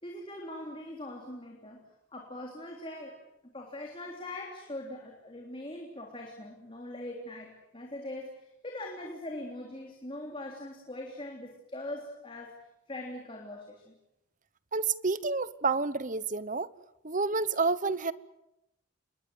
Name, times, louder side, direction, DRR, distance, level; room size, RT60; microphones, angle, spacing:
voice 1, 0.0-1.8 2.1-13.9, left 1 dB, 25° left, 3.4 m, -42 dB
voice 2, 14.7-16.7 17.0-18.1, right 4 dB, 40° right, 1.0 m, -29 dB
28.0 x 21.5 x 8.0 m
head